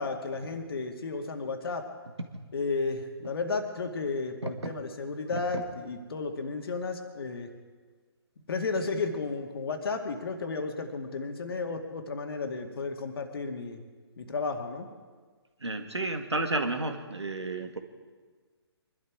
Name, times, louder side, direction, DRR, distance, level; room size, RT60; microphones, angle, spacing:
voice 1, 0.0-1.9 2.5-7.5 8.5-13.8 14.2-14.9, left 4 dB, 60° left, 5 dB, 2.1 m, -33 dB
voice 2, 5.3-5.6 15.6-17.8, right 2 dB, 90° right, 5 dB, 1.9 m, -32 dB
24.0 x 12.0 x 4.8 m, 1.5 s
figure-of-eight pair, 140°, 14 cm